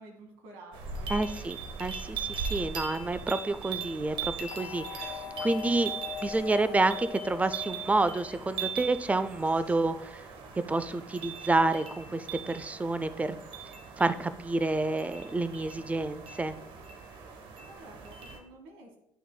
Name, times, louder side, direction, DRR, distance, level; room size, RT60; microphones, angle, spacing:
voice 1, 0.0-1.6 17.7-19.0, right 2 dB, 90° right, 3 dB, 1.5 m, -51 dB
sound 1, 0.7-18.4, right 6 dB, 70° right, 1.0 m, -40 dB
voice 2, 1.1-5.9 6.2-10.2 10.6-13.4 14.0-16.5, right 2 dB, 15° right, 12 dB, 0.4 m, -29 dB
sound 2, 4.5-8.7, left 7 dB, 60° left, 0.6 m, -41 dB
8.9 x 5.9 x 2.2 m, 0.81 s
supercardioid pair, 85°, 9 cm